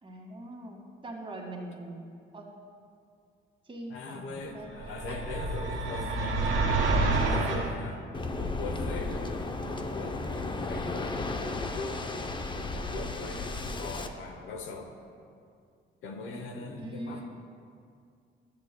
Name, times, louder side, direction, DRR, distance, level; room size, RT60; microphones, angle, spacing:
voice 1, 0.0-2.6 3.6-4.8 5.1-5.2 16.8-17.2, right 1 dB, 25° right, -1 dB, 1.8 m, -42 dB
voice 2, 3.9-6.7 7.1-8.0 8.4-12.2 12.6-14.9 16.0-17.2, left 3 dB, 80° left, 4 dB, 1.0 m, -41 dB
sound 1, 4.8-7.7, right 3 dB, 90° right, 1.1 m, -28 dB
Waves surf, 8.1-14.1, left 2 dB, 25° left, 0.6 m, -34 dB
13.5 x 8.5 x 2.2 m, 2.3 s
cardioid pair, 90°, 20 cm